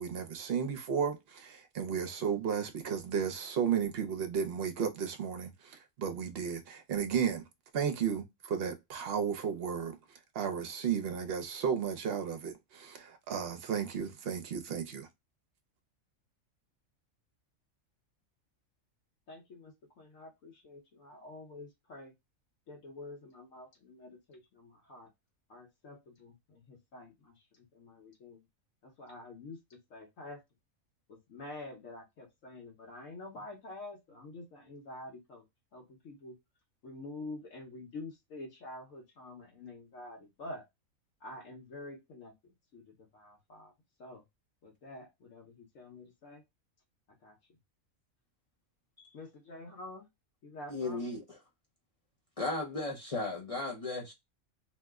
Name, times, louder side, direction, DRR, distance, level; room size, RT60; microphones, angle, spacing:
voice 1, 0.0-7.4 7.7-10.0 10.3-15.1, right 7 dB, 55° right, 0.8 m, -34 dB
voice 2, 19.3-22.1 22.7-25.1 25.5-27.1 27.7-28.4 29.0-30.4 31.1-35.4 35.7-36.4 36.8-40.6 41.2-42.3 42.7-42.8 43.1-43.7 44.0-44.2 44.6-46.4 47.2-47.3 49.1-50.1 50.4-51.0, left 2 dB, 70° left, 1.3 m, -47 dB
voice 3, 50.7-51.4 52.4-54.1, left 2 dB, 40° left, 0.5 m, -36 dB
2.9 x 2.1 x 3.4 m
omnidirectional pair, 1.4 m